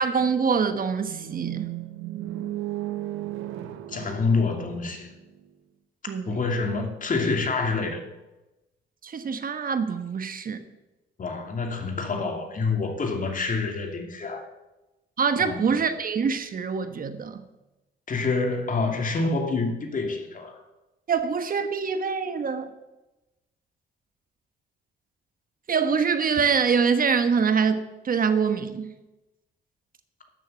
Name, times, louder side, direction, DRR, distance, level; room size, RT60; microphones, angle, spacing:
voice 1, 0.0-1.7 6.1-6.3 9.0-10.6 15.2-17.4 21.1-22.7 25.7-28.9, right 6 dB, 45° right, 1.2 m, -24 dB
sound 1, 1.0-5.2, right 14 dB, 85° right, 1.1 m, -34 dB
voice 2, 3.9-5.1 6.0-8.0 11.2-14.5 15.4-15.8 18.1-20.6, left 3 dB, 40° left, 2.6 m, -27 dB
12.5 x 7.8 x 7.9 m
cardioid pair, 90°, 20 cm